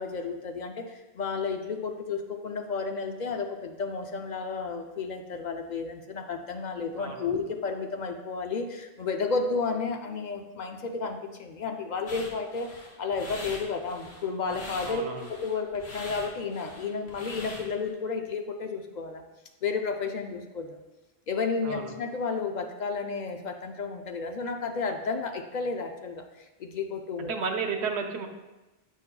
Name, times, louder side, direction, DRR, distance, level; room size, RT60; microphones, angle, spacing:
voice 1, 0.0-19.2 19.6-20.8 21.3-27.4, left 4 dB, 55° left, 4 dB, 0.5 m, -32 dB
voice 2, 6.9-7.3 14.8-15.3 21.6-21.9 27.3-28.3, right 5 dB, 80° right, 3 dB, 0.9 m, -32 dB
sound 1, 12.1-17.9, left 1 dB, 75° left, 1.4 m, -43 dB
8.1 x 5.6 x 2.2 m, 1.1 s
omnidirectional pair, 1.1 m